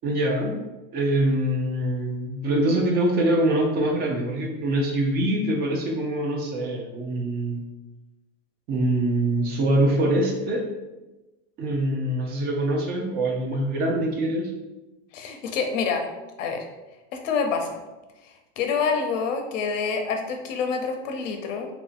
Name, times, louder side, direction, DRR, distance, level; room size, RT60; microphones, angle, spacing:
voice 1, 0.0-0.6 0.9-7.6 8.7-10.6 11.6-14.5, right 1 dB, 30° right, 1 dB, 0.3 m, -24 dB
voice 2, 15.1-16.0 16.4-16.6 17.2-17.7 18.2-21.7, left 5 dB, 90° left, 4 dB, 0.6 m, -27 dB
2.9 x 2.6 x 2.4 m, 1.1 s
supercardioid pair, 135°, 36 cm